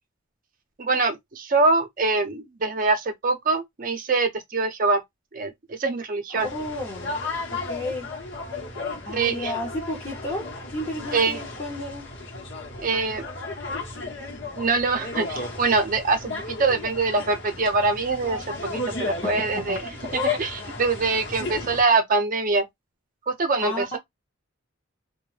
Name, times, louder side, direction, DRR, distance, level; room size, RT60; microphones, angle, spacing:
voice 1, 0.8-5.0 5.3-6.5 9.1-9.5 11.1-11.4 12.8-13.3 14.6-22.7 23.3-24.0, right 3 dB, 40° right, 0.6 m, -24 dB
voice 2, 6.3-7.1 7.5-8.1 9.0-12.1 19.5-19.8 23.6-24.0, left 1 dB, 30° left, 0.7 m, -32 dB
sound 1, 6.4-21.8, left 3 dB, 60° left, 0.9 m, -34 dB
2.3 x 2.1 x 3.1 m
head